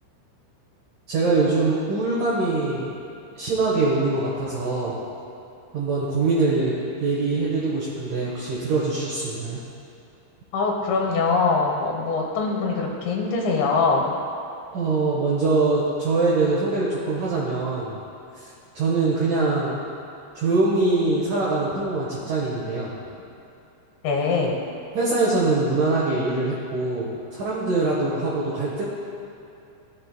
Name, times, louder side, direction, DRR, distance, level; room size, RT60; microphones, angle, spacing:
voice 1, 1.1-2.9 3.4-5.0 5.7-9.6 14.7-18.0 18.4-18.5 18.7-19.8 20.4-22.9 24.9-28.8, right 3 dB, 65° right, -6 dB, 2.2 m, -23 dB
voice 2, 10.5-14.2 24.0-24.6, left 4 dB, 80° left, 0 dB, 3.2 m, -23 dB
15.5 x 7.5 x 2.2 m, 2.7 s
omnidirectional pair, 5.3 m